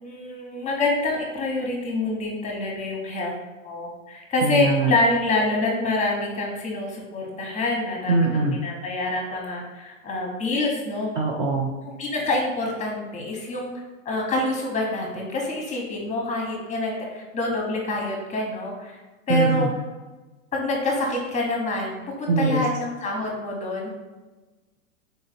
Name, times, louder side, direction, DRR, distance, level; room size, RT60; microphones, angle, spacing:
voice 1, 0.0-3.3 3.6-11.1 12.0-13.7 14.0-19.0 19.3-19.7 20.5-23.9, left 2 dB, 20° left, 0 dB, 0.8 m, -26 dB
voice 2, 4.4-4.9 8.1-8.6 11.2-11.7 19.3-19.7 22.3-22.6, right 3 dB, 30° right, -2 dB, 0.4 m, -22 dB
3.9 x 2.6 x 4.1 m, 1.2 s
hypercardioid pair, 120°, 41 cm